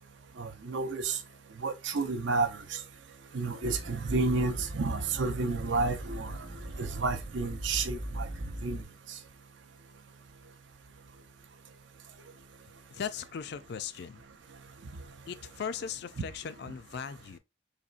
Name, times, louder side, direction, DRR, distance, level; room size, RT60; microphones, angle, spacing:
voice 1, 0.4-1.2 1.6-2.8 3.3-6.4 6.8-8.3 8.6-8.8, right 3 dB, 65° right, 0.5 m, -31 dB
sound 1, 3.6-8.8, right 1 dB, 45° right, 0.9 m, -39 dB
voice 2, 12.9-14.2 15.3-17.4, left 7 dB, 55° left, 0.4 m, -38 dB
4.2 x 3.0 x 2.4 m
head